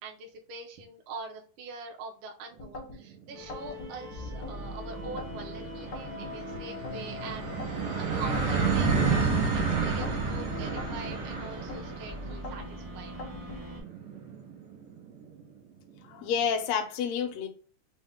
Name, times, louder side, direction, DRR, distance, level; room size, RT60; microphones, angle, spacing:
voice 1, 0.0-9.2 9.5-13.2, right 4 dB, 75° right, 1.2 m, -43 dB
sound 1, 2.6-3.0 3.5-4.6 5.0-5.4 5.9-7.0 7.4-7.9 8.3-9.4 9.9-10.3 10.8-11.8 12.3-12.7 13.2-13.6, left 2 dB, 60° left, 1.0 m, -42 dB
sound 2, 3.1-3.2 3.5-3.6 3.9-15.3, right 4 dB, 90° right, 2.3 m, -31 dB
sound 3, 3.3-13.8, left 1 dB, 45° right, 0.6 m, -41 dB
voice 2, 16.0-17.5, left 7 dB, 75° left, 1.6 m, -29 dB
5.3 x 2.1 x 3.4 m
omnidirectional pair, 3.6 m